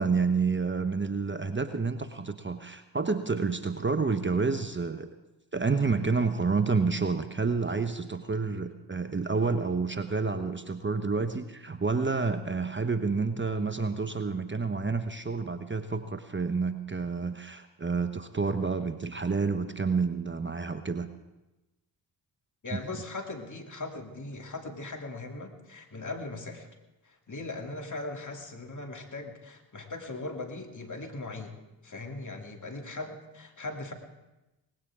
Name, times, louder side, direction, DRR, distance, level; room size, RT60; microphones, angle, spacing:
voice 1, 0.0-5.1 5.5-21.1, right 4 dB, 25° right, 9 dB, 1.0 m, -29 dB
voice 2, 22.6-26.7 27.0-33.9, left 2 dB, 40° left, 3 dB, 2.6 m, -39 dB
19.0 x 16.5 x 3.7 m, 1.0 s
hypercardioid pair, 40°, 47 cm